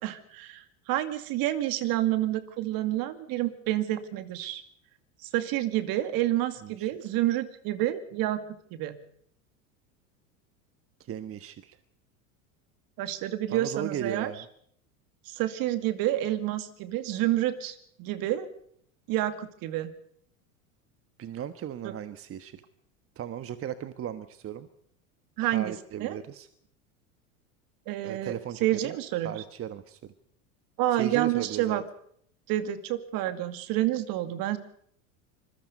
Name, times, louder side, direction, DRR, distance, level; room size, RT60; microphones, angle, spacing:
voice 1, 0.0-4.6 5.2-8.4 8.7-9.0 13.0-14.3 15.3-18.5 19.1-19.9 21.8-21.9 25.4-25.8 26.0-26.2 27.9-28.3 28.6-29.3 30.8-31.8 32.5-34.6, right 14 dB, 55° right, 11 dB, 2.4 m, -29 dB
voice 2, 11.0-11.8 13.5-14.5 21.2-22.6 23.2-24.7 25.5-26.5 28.0-28.9 29.2-30.1 30.9-31.8, right 10 dB, 35° right, 12 dB, 1.3 m, -36 dB
26.0 x 21.5 x 5.4 m, 0.67 s
hypercardioid pair, 95°, 41 cm